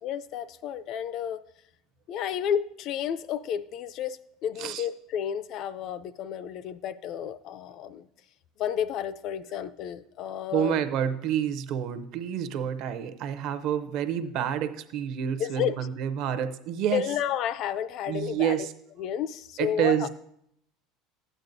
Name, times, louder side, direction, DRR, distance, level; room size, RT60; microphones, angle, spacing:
voice 1, 0.0-1.4 2.1-8.1 8.6-10.8 15.4-15.8 16.9-18.6 19.0-20.1, left 9 dB, 45° left, 13 dB, 0.3 m, -31 dB
voice 2, 10.5-17.0 18.1-18.7 19.6-20.1, right 9 dB, 50° right, 11 dB, 0.6 m, -28 dB
13.0 x 8.9 x 2.6 m, 0.76 s
cardioid pair, 165°, 0 cm